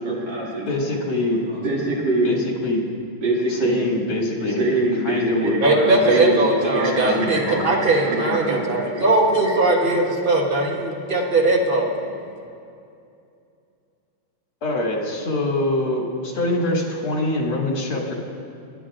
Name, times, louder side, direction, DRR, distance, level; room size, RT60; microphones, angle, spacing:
voice 1, 0.0-0.7 1.3-2.4 3.2-3.8 4.5-5.6 6.0-7.1 7.5-9.9, right 2 dB, 60° right, -6 dB, 3.0 m, -24 dB
voice 2, 0.7-1.4 2.2-2.8 3.5-4.6 5.0-6.1 6.7-7.7 14.6-18.1, left 2 dB, 80° left, -4 dB, 2.8 m, -25 dB
voice 3, 5.6-11.9, right 2 dB, 40° right, -1 dB, 0.8 m, -19 dB
21.0 x 10.5 x 2.5 m, 2.5 s
omnidirectional pair, 2.3 m